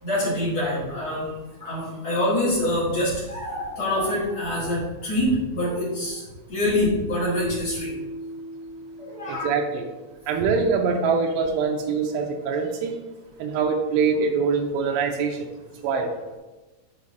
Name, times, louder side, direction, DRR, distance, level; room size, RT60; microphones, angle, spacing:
voice 1, 0.0-1.3 1.6-6.2 6.5-7.9 9.0-9.5, left 1 dB, 40° left, -8 dB, 2.0 m, -25 dB
Keyboard (musical), 7.4-10.2, equal, 75° left, 4.2 m, -37 dB
voice 2, 9.3-9.9 10.3-13.0 13.4-15.5 15.8-16.1, right 5 dB, 90° right, 2 dB, 2.4 m, -24 dB
12.5 x 4.8 x 2.6 m, 1.1 s
omnidirectional pair, 5.5 m